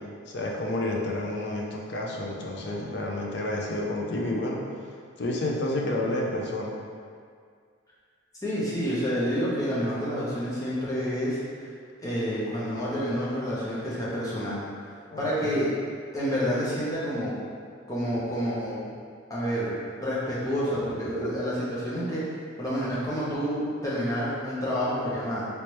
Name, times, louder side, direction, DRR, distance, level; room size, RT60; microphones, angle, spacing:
voice 1, 0.3-4.6 5.2-6.7 15.1-15.7, left 1 dB, 55° left, -2 dB, 0.5 m, -30 dB
voice 2, 8.4-11.4 12.0-14.6 15.2-15.7 16.1-17.3 17.9-18.8 19.3-19.7 20.0-22.2 22.6-25.5, equal, 15° left, -9 dB, 0.7 m, -28 dB
3.2 x 3.1 x 3.0 m, 2.1 s
head